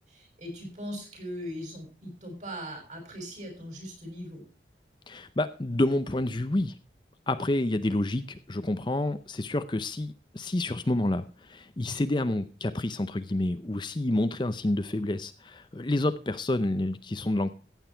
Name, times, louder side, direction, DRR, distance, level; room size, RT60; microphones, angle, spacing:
voice 1, 0.1-4.4, equal, 40° right, 3 dB, 6.5 m, -39 dB
voice 2, 5.1-6.8 7.3-17.5, left 1 dB, 25° left, 11 dB, 0.6 m, -29 dB
15.0 x 9.1 x 4.4 m, 0.35 s
head